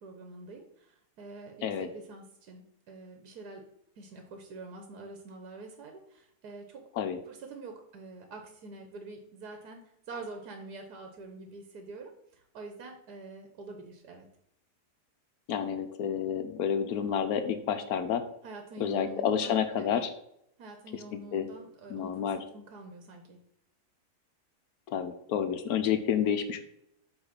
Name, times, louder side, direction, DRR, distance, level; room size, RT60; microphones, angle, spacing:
voice 1, 0.0-3.6 4.0-6.8 7.3-14.3 18.4-20.0 20.6-23.4, right 3 dB, 75° right, 4 dB, 1.5 m, -46 dB
voice 2, 15.5-18.2 18.8-20.1 21.1-21.5 21.9-22.4 24.9-26.6, left 8 dB, 75° left, 8 dB, 1.2 m, -29 dB
8.0 x 3.2 x 5.8 m, 0.76 s
omnidirectional pair, 1.7 m